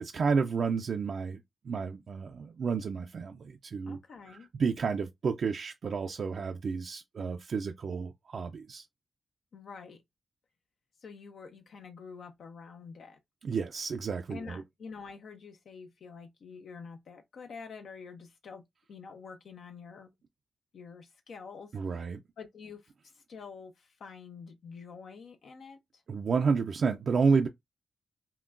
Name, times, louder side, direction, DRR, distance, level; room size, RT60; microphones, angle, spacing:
voice 1, 0.0-1.4 1.7-4.0 4.3-8.8 13.4-14.6 21.7-22.2 26.1-27.5, right 5 dB, 65° right, 0.4 m, -30 dB
voice 2, 3.8-4.5 9.5-10.0 11.0-13.2 14.3-20.1 20.7-21.7 22.4-26.0, left 5 dB, 80° left, 0.7 m, -47 dB
5.7 x 2.2 x 2.4 m
wide cardioid pair, 95°, 0 cm